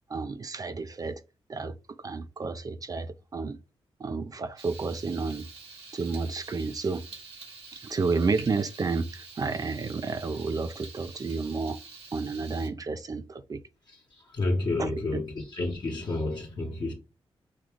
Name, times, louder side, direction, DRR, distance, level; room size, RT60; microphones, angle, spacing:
voice 1, 0.1-1.2 1.5-3.6 4.0-5.5 5.9-7.1 7.7-11.8 12.1-13.7 14.8-15.2, right 4 dB, 35° right, 0.4 m, -31 dB
Frying (food), 4.6-12.7, right 4 dB, 90° right, 2.2 m, -47 dB
voice 2, 14.3-16.9, left 2 dB, 45° left, 1.1 m, -30 dB
6.3 x 2.3 x 3.6 m
cardioid pair, 90°, 10 cm